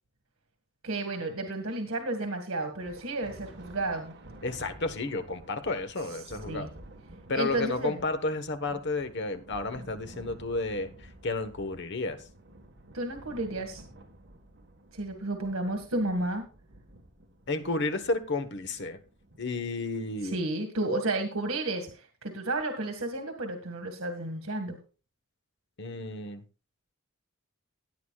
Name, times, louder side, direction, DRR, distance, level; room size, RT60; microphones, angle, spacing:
voice 1, 0.8-4.1 6.5-6.7 7.3-8.0 12.9-13.8 14.9-16.4 20.3-24.8, right 2 dB, 90° right, 4 dB, 1.8 m, -32 dB
Thunder, 2.8-20.5, right 1 dB, 55° right, 1.6 m, -51 dB
voice 2, 4.4-6.7 7.3-12.2 17.5-19.0 19.4-20.4 25.8-26.4, left 3 dB, 60° left, 9 dB, 1.3 m, -32 dB
18.0 x 9.4 x 2.4 m, 0.35 s
head